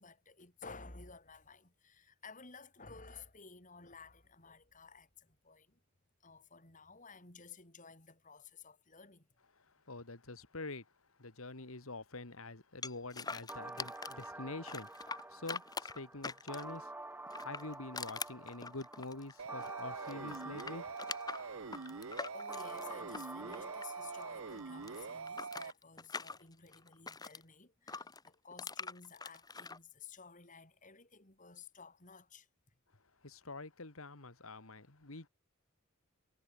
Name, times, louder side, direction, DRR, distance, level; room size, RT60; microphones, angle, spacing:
voice 1, 0.0-5.8 6.2-9.3 22.3-32.5, left 4 dB, 35° left, 5.3 m, -54 dB
voice 2, 9.9-10.9 11.2-16.9 17.4-20.9 33.2-35.3, left 2 dB, 75° left, 2.3 m, -46 dB
sound 1, 12.8-14.3 14.7-16.8 17.3-19.8 20.0-24.2 24.5-27.4 27.9-29.8, left 4 dB, 20° left, 1.4 m, -44 dB
sound 2, 13.5-25.5, right 2 dB, 10° right, 1.5 m, -49 dB
sound 3, 19.4-25.7, right 5 dB, 65° right, 0.8 m, -44 dB
head